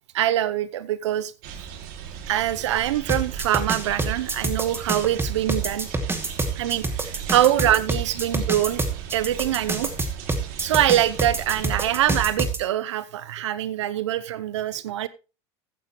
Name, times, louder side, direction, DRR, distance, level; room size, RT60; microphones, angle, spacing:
voice 1, 0.1-1.3 2.3-5.9 6.6-8.8 9.1-9.9 10.6-15.1, right 12 dB, 90° right, 0.8 m, -24 dB
sound 1, 1.4-12.3, right 8 dB, 65° right, 2.6 m, -38 dB
sound 2, 3.1-12.6, right 3 dB, 15° right, 2.5 m, -26 dB
15.0 x 9.1 x 3.1 m
hypercardioid pair, 95°, 15 cm